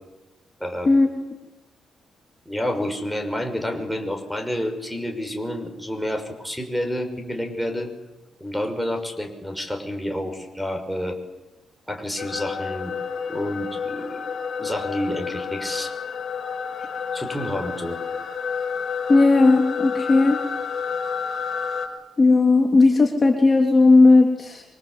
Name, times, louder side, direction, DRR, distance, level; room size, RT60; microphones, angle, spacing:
voice 1, 0.6-1.0 2.5-7.9 8.4-11.2 11.9-12.9 13.3-14.2 14.6-15.9 17.1-18.0, equal, ahead, 3 dB, 5.9 m, -29 dB
sound 1, 12.2-21.9, left 6 dB, 45° left, 5.5 m, -30 dB
voice 2, 19.1-20.4 22.2-24.6, left 3 dB, 30° left, 1 dB, 3.3 m, -16 dB
28.0 x 24.5 x 8.4 m, 1.0 s
cardioid pair, 120°, 0 cm